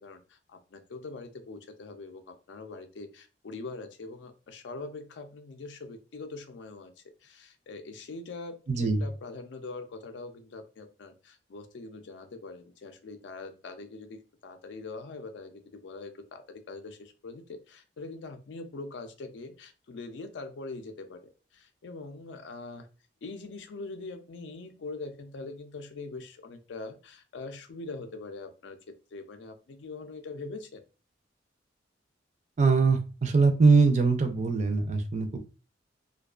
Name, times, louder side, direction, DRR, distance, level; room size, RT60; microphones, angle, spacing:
voice 1, 0.0-6.9 7.2-22.9 23.2-28.8 29.1-30.8, left 3 dB, 70° left, 7 dB, 0.4 m, -43 dB
voice 2, 8.7-9.0 32.6-35.4, right 4 dB, 40° right, 5 dB, 0.4 m, -22 dB
2.3 x 2.2 x 2.3 m, 0.33 s
head